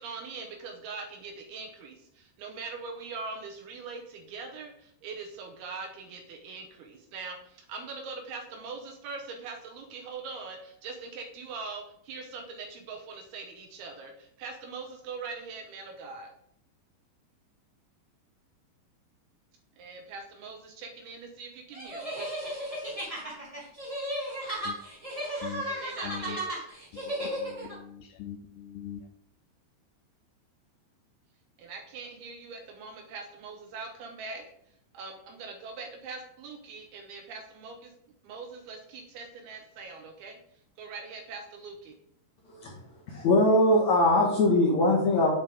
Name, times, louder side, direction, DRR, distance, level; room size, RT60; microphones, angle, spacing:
voice 1, 0.0-16.3 19.8-22.2 25.6-26.6 27.2-27.3 31.6-34.4 34.9-37.9 38.2-40.4 40.8-42.0, right 4 dB, 70° right, 4 dB, 2.6 m, -42 dB
sound 1, 21.7-27.7, equal, 10° right, 1.6 m, -34 dB
voice 2, 25.4-26.4 27.0-29.0, left 10 dB, 85° left, 7 dB, 2.4 m, -42 dB
voice 3, 42.5-42.8 43.1-45.3, left 1 dB, 55° left, -3 dB, 2.1 m, -22 dB
9.2 x 7.3 x 3.6 m, 0.70 s
omnidirectional pair, 5.2 m